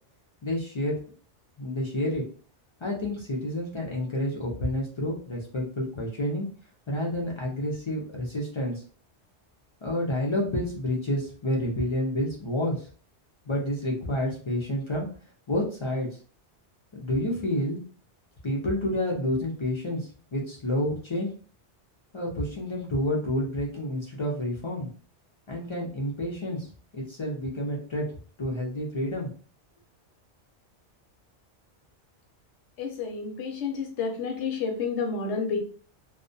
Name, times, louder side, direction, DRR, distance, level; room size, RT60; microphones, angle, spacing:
voice 1, 0.4-0.9 1.6-2.2 2.8-6.5 6.9-8.8 9.8-12.9 13.5-15.1 15.5-16.1 16.9-17.8 18.4-21.3 22.1-24.9 25.5-26.7 26.9-28.1 28.4-29.3, left 1 dB, 45° left, -2 dB, 0.4 m, -29 dB
voice 2, 32.8-35.6, left 5 dB, 80° left, 3 dB, 0.9 m, -30 dB
2.3 x 2.1 x 2.6 m, 0.41 s
omnidirectional pair, 1.2 m